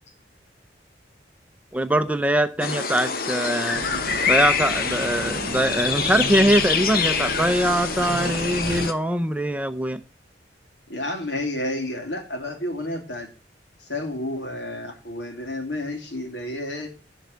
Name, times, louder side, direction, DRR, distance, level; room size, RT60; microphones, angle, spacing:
voice 1, 1.7-3.8 4.3-10.0, right 1 dB, 10° right, 10 dB, 0.6 m, -22 dB
sound 1, 2.6-8.9, left 6 dB, 55° left, 1.1 m, -25 dB
sound 2, 3.7-8.9, right 3 dB, 60° right, 0.6 m, -35 dB
voice 2, 10.9-13.3 13.8-16.9, left 1 dB, 75° left, 3 dB, 2.9 m, -30 dB
11.5 x 4.5 x 8.2 m, 0.35 s
head